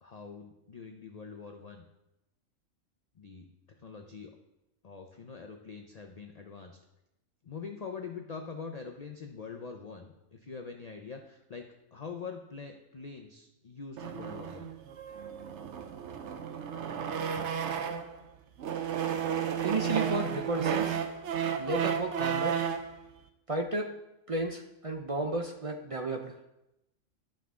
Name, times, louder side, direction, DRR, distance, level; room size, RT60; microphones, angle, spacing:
voice 1, 0.0-1.9 3.2-3.5 3.8-4.3 4.8-6.8 7.4-14.7, left 5 dB, 45° left, 3 dB, 0.5 m, -44 dB
sound 1, 14.0-18.2 18.6-22.9, right 8 dB, 65° right, 0.9 m, -32 dB
voice 2, 19.6-21.0 21.6-22.6 23.5-23.9 24.3-26.3, right 2 dB, 45° right, 3 dB, 0.4 m, -33 dB
11.5 x 5.8 x 3.7 m, 0.89 s
omnidirectional pair, 1.4 m